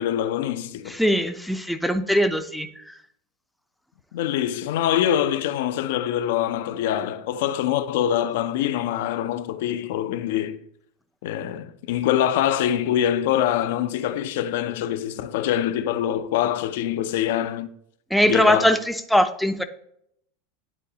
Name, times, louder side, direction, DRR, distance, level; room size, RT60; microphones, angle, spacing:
voice 1, 0.0-1.0 4.1-10.6 11.2-17.7 18.3-18.8, left 11 dB, 75° left, 0.5 m, -24 dB
voice 2, 0.9-2.9 18.1-19.6, equal, ahead, 0.5 m, -21 dB
10.0 x 4.0 x 2.8 m
supercardioid pair, 135°, 0 cm